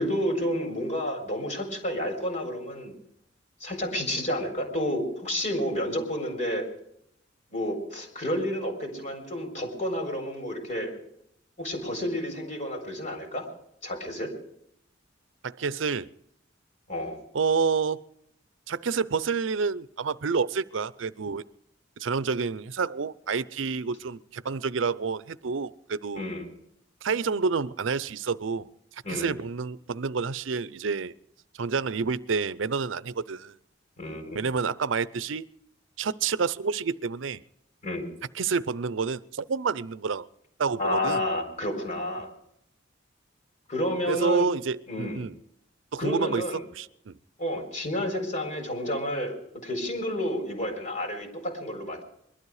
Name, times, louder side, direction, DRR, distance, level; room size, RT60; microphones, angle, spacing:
voice 1, 0.0-2.9 3.6-6.7 7.5-11.0 11.6-13.5 13.8-14.3 16.9-17.2 26.1-26.5 29.0-29.3 34.0-34.4 37.8-38.0 40.8-42.3 43.7-44.5 44.9-45.3 46.0-46.6 47.4-52.0, left 1 dB, 40° left, 4.2 m, -30 dB
voice 2, 15.4-16.1 17.3-18.0 18.7-21.4 22.0-26.2 27.0-28.7 29.1-31.1 31.6-33.5 34.3-35.5 36.0-37.4 38.4-40.3 40.6-41.2 44.1-45.3 45.9-47.2, right 5 dB, 85° right, 0.6 m, -29 dB
22.0 x 12.5 x 4.9 m
head